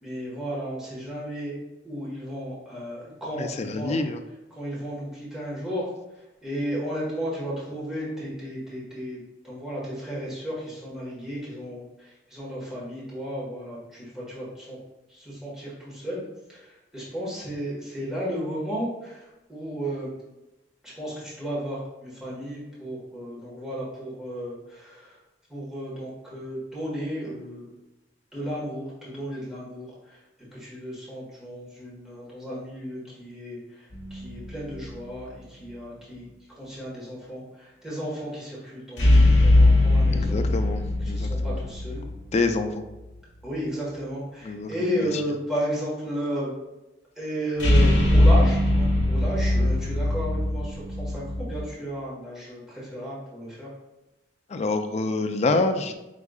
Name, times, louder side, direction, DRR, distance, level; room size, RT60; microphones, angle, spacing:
voice 1, 0.0-1.6 1.8-3.9 4.5-5.9 6.4-9.2 9.4-14.8 15.1-16.2 16.5-20.2 20.8-25.2 25.5-27.7 28.3-30.2 30.5-36.3 36.6-40.4 41.0-42.0 43.4-46.6 47.1-53.7, equal, 5° right, -8 dB, 1.5 m, -34 dB
voice 2, 3.4-4.2 40.1-40.8 41.1-41.6 42.3-42.8 44.4-45.1 54.5-55.9, left 3 dB, 40° left, 7 dB, 0.4 m, -27 dB
sound 1, 33.9-34.8 39.0-42.6 47.6-51.6, left 1 dB, 70° left, 0.9 m, -20 dB
5.0 x 3.5 x 2.4 m, 0.99 s
head